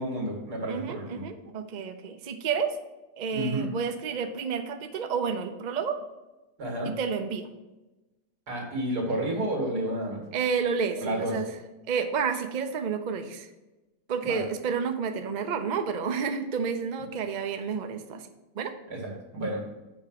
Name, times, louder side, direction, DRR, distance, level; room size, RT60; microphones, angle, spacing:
voice 1, 0.0-1.2 3.3-3.7 6.6-6.9 8.5-10.2 11.0-11.3 14.2-14.4 18.9-19.6, right 1 dB, 85° right, -1 dB, 2.7 m, -30 dB
voice 2, 0.7-2.7 3.2-6.0 6.8-7.5 10.3-11.5 11.9-13.5 14.1-18.2 18.6-18.7, right 6 dB, 55° right, 7 dB, 0.5 m, -30 dB
7.2 x 4.8 x 5.8 m, 1.1 s
omnidirectional pair, 1.7 m